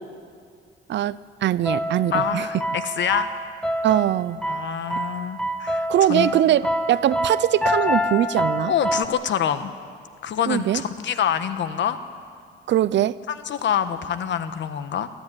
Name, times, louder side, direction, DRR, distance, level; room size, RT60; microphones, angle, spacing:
voice 1, 0.9-2.5 3.8-4.4 5.9-8.7 10.5-10.8 12.7-13.2, right 12 dB, 65° right, 18 dB, 0.6 m, -21 dB
sound 1, 1.6-9.0, equal, 5° left, 1.3 m, -26 dB
voice 2, 2.1-3.3 4.5-6.3 8.7-9.7 10.2-12.0 13.3-15.1, left 9 dB, 65° left, 11 dB, 1.3 m, -26 dB
22.0 x 14.0 x 9.8 m, 2.1 s
cardioid pair, 90°, 20 cm